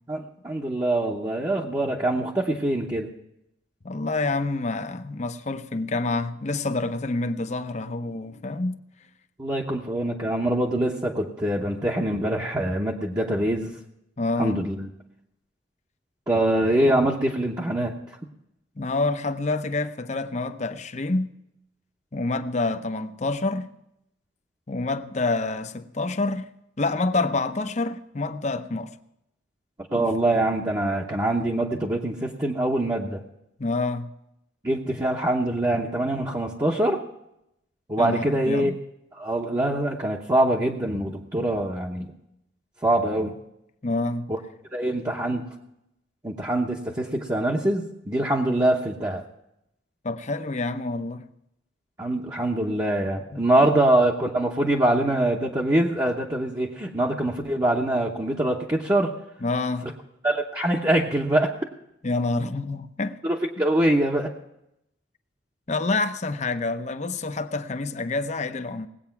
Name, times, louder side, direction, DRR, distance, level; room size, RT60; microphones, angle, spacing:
voice 1, 0.1-3.1 9.4-13.7 14.4-14.9 16.3-17.9 29.9-33.2 34.6-37.0 37.9-38.7 39.1-42.1 42.8-43.3 44.3-44.4 44.7-45.4 46.2-49.2 52.0-59.1 60.2-61.5 63.2-64.3, right 1 dB, 20° right, 0.9 m, -24 dB
voice 2, 3.8-8.8 14.2-14.6 18.8-21.3 22.1-23.7 24.7-26.5 26.8-28.9 29.9-30.1 33.6-34.1 38.0-38.8 43.8-44.3 50.0-51.3 53.3-53.7 59.4-59.9 62.0-63.2 65.7-68.9, left 3 dB, 35° left, 0.7 m, -27 dB
18.5 x 8.7 x 5.8 m
head